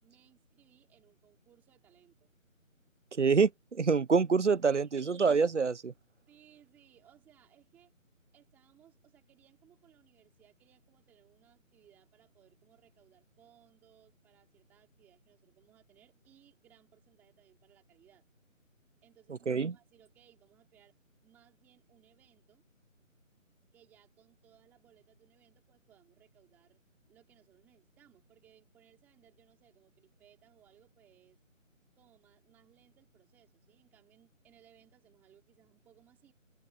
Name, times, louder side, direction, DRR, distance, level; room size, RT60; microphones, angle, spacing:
voice 1, 0.0-2.3 4.6-5.0 6.3-7.9 8.3-18.2 19.0-21.0 21.2-22.6 23.7-26.8 27.1-31.4 32.0-36.3, right 11 dB, 5° right, 3.9 m, -65 dB
voice 2, 3.2-5.9 19.5-19.7, right 5 dB, 60° right, 0.9 m, -26 dB
figure-of-eight pair, 170°, 40 cm